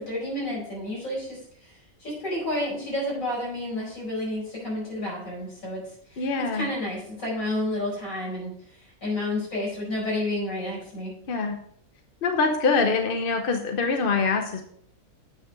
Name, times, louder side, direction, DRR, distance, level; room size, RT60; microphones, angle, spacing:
voice 1, 0.0-5.8 6.1-11.1, left 1 dB, 65° left, -4 dB, 5.3 m, -31 dB
voice 2, 6.2-6.7 11.3-11.6 12.2-14.7, left 4 dB, 45° left, 5 dB, 0.9 m, -24 dB
8.2 x 6.4 x 5.1 m, 0.63 s
omnidirectional pair, 1.5 m